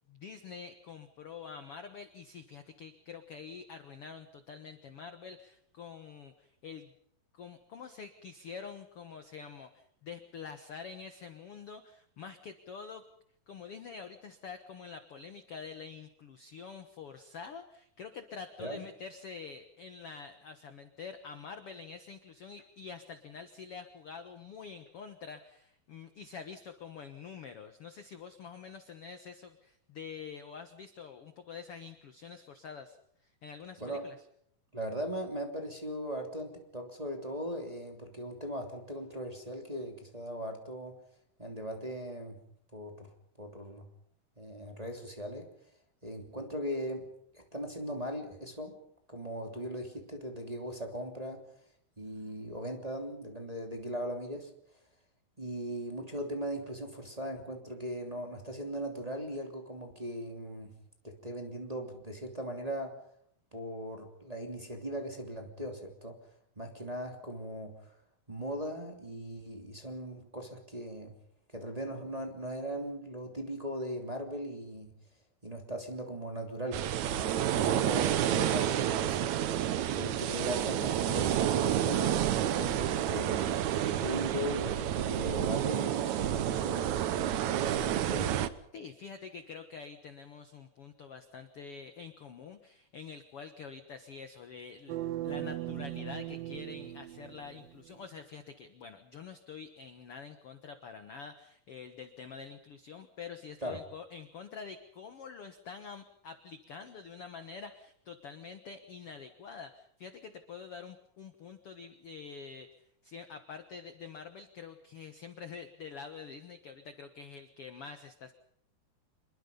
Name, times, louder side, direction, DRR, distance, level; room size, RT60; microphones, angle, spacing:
voice 1, 0.1-6.9 7.3-13.0 13.5-33.0 33.2-34.2 88.7-95.0 95.2-118.3, left 6 dB, 55° left, 8 dB, 1.7 m, -46 dB
voice 2, 34.7-41.0 41.4-42.4 42.7-43.1 43.4-43.9 44.4-45.5 46.0-47.0 47.3-48.8 49.1-51.4 52.0-54.5 55.4-60.8 61.0-63.0 63.5-66.2 66.6-67.8 68.3-71.1 71.5-74.9 75.4-79.6 79.9-83.4 83.8-88.4 103.6-103.8, equal, 10° right, 3 dB, 2.7 m, -39 dB
sound 1, 76.7-88.5, right 11 dB, 65° right, 2.0 m, -30 dB
sound 2, 94.9-97.9, right 14 dB, 80° right, 3.0 m, -39 dB
27.0 x 22.0 x 5.4 m, 0.68 s
omnidirectional pair, 4.1 m